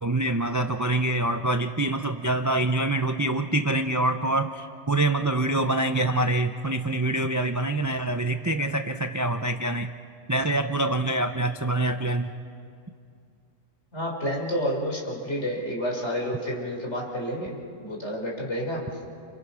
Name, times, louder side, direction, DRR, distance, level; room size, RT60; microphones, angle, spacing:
voice 1, 0.0-9.9 10.3-12.3, right 2 dB, 25° right, 7 dB, 0.4 m, -25 dB
voice 2, 13.9-18.8, equal, 55° left, -1 dB, 4.8 m, -30 dB
29.5 x 29.0 x 5.7 m, 2.4 s
omnidirectional pair, 1.4 m